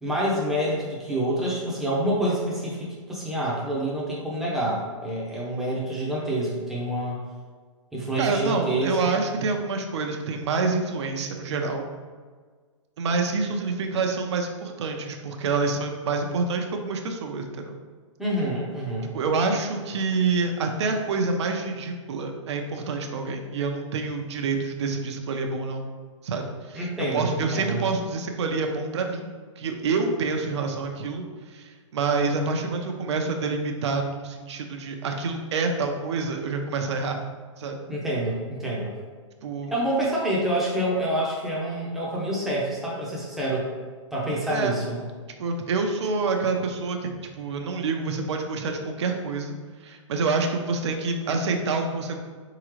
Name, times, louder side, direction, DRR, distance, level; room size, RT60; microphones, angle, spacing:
voice 1, 0.0-7.2 7.9-9.3 18.2-19.1 26.7-27.8 37.9-38.9 39.7-43.7 44.1-45.0, right 1 dB, ahead, -6 dB, 0.8 m, -27 dB
voice 2, 8.2-11.9 13.0-17.8 19.1-25.9 26.2-37.2 37.6-37.8 39.4-39.7 44.5-44.7 45.4-47.1 47.4-49.6 49.8-52.2, right 4 dB, 60° right, 4 dB, 0.7 m, -27 dB
4.0 x 3.7 x 3.1 m, 1.5 s
hypercardioid pair, 155°, 17 cm